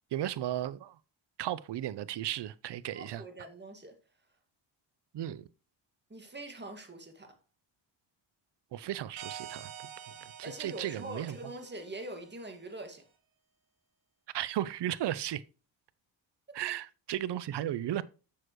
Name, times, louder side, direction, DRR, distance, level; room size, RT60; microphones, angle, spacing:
voice 1, 0.1-1.0 1.4-3.2 5.1-5.5 8.7-9.7 10.1-11.4 14.3-15.4 16.5-18.0, right 12 dB, 60° right, 0.7 m, -35 dB
voice 2, 2.9-4.0 6.1-7.3 10.4-13.0 16.5-16.6, right 1 dB, 20° right, 2.0 m, -43 dB
sound 1, 9.2-12.6, right 9 dB, 75° right, 1.6 m, -48 dB
7.3 x 6.4 x 3.1 m
cardioid pair, 70°, 48 cm